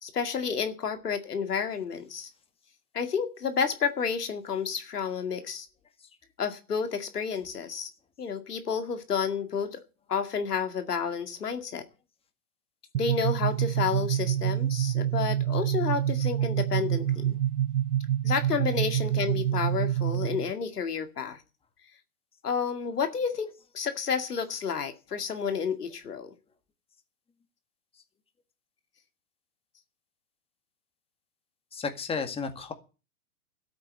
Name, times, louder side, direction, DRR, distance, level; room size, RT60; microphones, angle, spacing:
voice 1, 0.0-2.3 2.9-5.7 6.4-7.9 8.2-9.8 10.1-11.8 13.0-17.4 18.2-21.4 22.4-26.3, left 6 dB, 85° left, 8 dB, 2.2 m, -30 dB
sound 1, 12.9-20.5, right 11 dB, 75° right, 0.6 m, -27 dB
voice 2, 31.7-32.7, left 5 dB, 10° left, 7 dB, 1.9 m, -32 dB
13.5 x 8.6 x 8.0 m, 0.32 s
hypercardioid pair, 120°, 45 cm